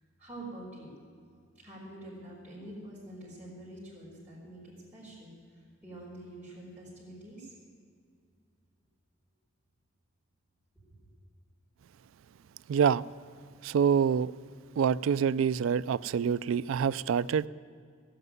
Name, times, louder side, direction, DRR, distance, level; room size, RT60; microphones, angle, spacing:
voice 1, 0.2-0.9 1.5-7.5, right 1 dB, 5° right, -9 dB, 4.3 m, -46 dB
voice 2, 12.7-13.0 13.6-14.3 14.8-17.5, right 7 dB, 75° right, 18 dB, 0.3 m, -26 dB
17.0 x 8.0 x 9.4 m, 2.2 s
head